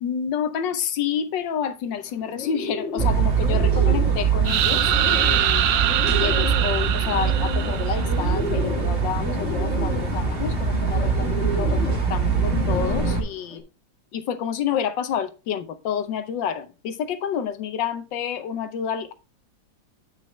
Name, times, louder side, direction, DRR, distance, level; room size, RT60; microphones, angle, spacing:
voice 1, 0.0-5.6 6.2-13.6 14.1-19.1, left 8 dB, 75° left, 1.5 m, -29 dB
Bird, 2.0-13.6, left 3 dB, 40° left, 1.3 m, -33 dB
sound 1, 3.0-13.2, right 5 dB, 30° right, 1.5 m, -23 dB
sound 2, 4.4-8.3, right 12 dB, 80° right, 0.8 m, -23 dB
9.1 x 5.8 x 3.2 m
omnidirectional pair, 2.1 m